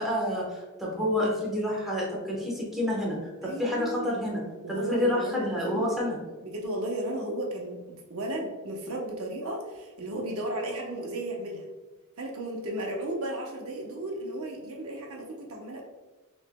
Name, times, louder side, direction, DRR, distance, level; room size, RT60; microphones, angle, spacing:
voice 1, 0.0-4.4 4.7-6.2, left 1 dB, ahead, -5 dB, 1.1 m, -29 dB
voice 2, 3.4-4.1 4.6-5.9 6.4-11.7 12.2-15.8, right 1 dB, 75° right, 0 dB, 0.9 m, -34 dB
6.4 x 3.2 x 2.2 m, 1.2 s
head